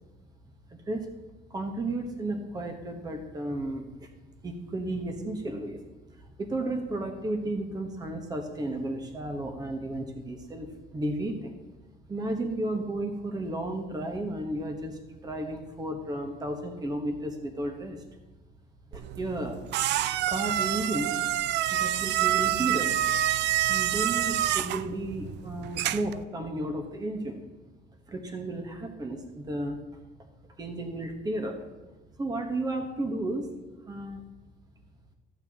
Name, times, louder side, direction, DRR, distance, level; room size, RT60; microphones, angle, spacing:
voice 1, 0.7-1.1 1.5-4.1 4.4-5.8 6.2-11.6 12.1-18.0 18.9-19.6 20.3-21.2 21.8-22.9 23.6-27.4 28.1-29.8 30.6-31.6 32.2-33.5 33.9-34.2, right 1 dB, 20° right, 4 dB, 1.2 m, -33 dB
sound 1, 18.9-26.2, right 12 dB, 70° right, 0.4 m, -27 dB
14.0 x 8.8 x 2.9 m, 1.2 s
cardioid pair, 160°, 19 cm